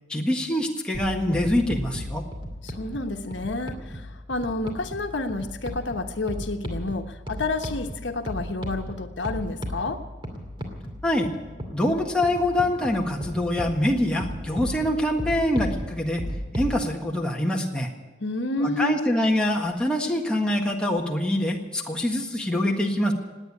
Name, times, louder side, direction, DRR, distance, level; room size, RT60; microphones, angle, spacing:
voice 1, 0.1-2.2 11.0-11.3 11.7-16.2 16.5-17.9 18.6-23.1, left 1 dB, 5° left, -1 dB, 1.6 m, -24 dB
sound 1, 0.9-16.8, equal, 25° right, 2.5 m, -35 dB
voice 2, 2.6-10.0 18.2-19.0, left 2 dB, 85° left, 6 dB, 1.1 m, -29 dB
18.5 x 9.3 x 8.4 m, 1.2 s
head